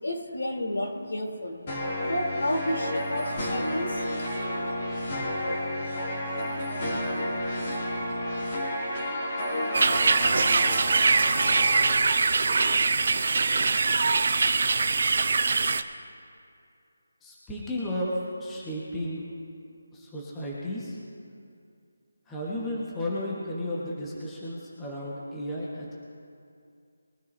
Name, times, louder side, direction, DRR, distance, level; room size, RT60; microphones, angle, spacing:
voice 1, 0.0-1.6 2.0-4.1, left 1 dB, 75° left, 0 dB, 3.2 m, -31 dB
sound 1, 1.7-11.9, left 1 dB, 25° left, 2.6 m, -31 dB
sound 2, 9.7-15.8, right 4 dB, 45° right, 0.6 m, -23 dB
voice 2, 17.2-19.3 19.9-21.0 22.3-25.9, left 1 dB, 5° left, -6 dB, 1.3 m, -33 dB
22.5 x 14.0 x 2.7 m, 2.4 s
figure-of-eight pair, 175°, 0 cm